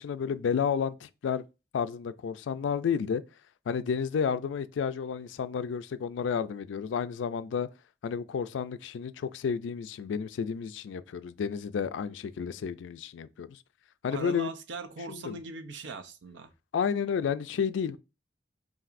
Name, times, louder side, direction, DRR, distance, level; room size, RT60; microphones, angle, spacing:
voice 1, 0.0-1.4 1.7-3.2 3.7-7.7 8.0-13.6 14.0-14.5 15.1-15.4 16.7-18.0, left 6 dB, 85° left, 0.3 m, -31 dB
voice 2, 14.1-16.5, right 3 dB, 80° right, 0.6 m, -40 dB
5.7 x 2.6 x 2.5 m
head